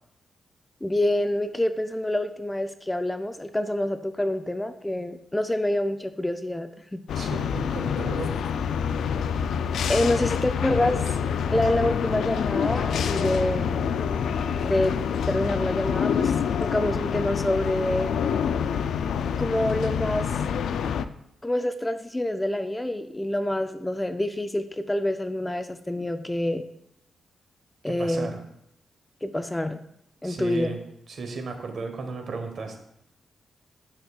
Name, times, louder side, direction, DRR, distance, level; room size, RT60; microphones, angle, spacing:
voice 1, 0.8-7.0 9.9-11.0 11.5-13.9 14.6-15.0 15.3-16.3 16.6-18.2 19.4-20.3 21.4-26.6 27.8-28.3 29.2-29.8 30.2-30.7, left 1 dB, 10° left, 9 dB, 0.4 m, -27 dB
sound 1, 7.1-21.0, left 7 dB, 85° left, 0.3 m, -27 dB
voice 2, 7.1-8.3 27.9-28.4 30.2-30.8 31.1-32.8, right 4 dB, 60° right, 5 dB, 1.1 m, -34 dB
9.4 x 6.1 x 2.3 m, 0.77 s
cardioid pair, 105°, 0 cm